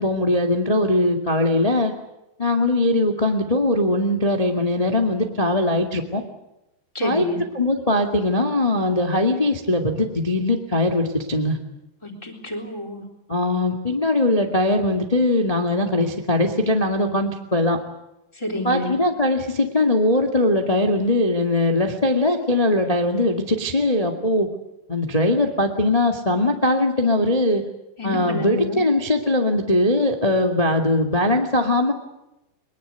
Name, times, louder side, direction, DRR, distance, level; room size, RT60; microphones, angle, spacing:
voice 1, 0.0-1.9 2.4-6.2 7.0-7.3 7.5-11.6 13.3-17.8 18.6-24.5 24.9-27.6 28.0-31.9, left 1 dB, 85° left, 4 dB, 0.3 m, -20 dB
voice 2, 6.9-7.4 12.0-13.1 18.3-19.0 28.0-28.8, left 2 dB, 5° left, 5 dB, 3.2 m, -28 dB
22.5 x 22.0 x 8.2 m, 0.90 s
omnidirectional pair, 4.9 m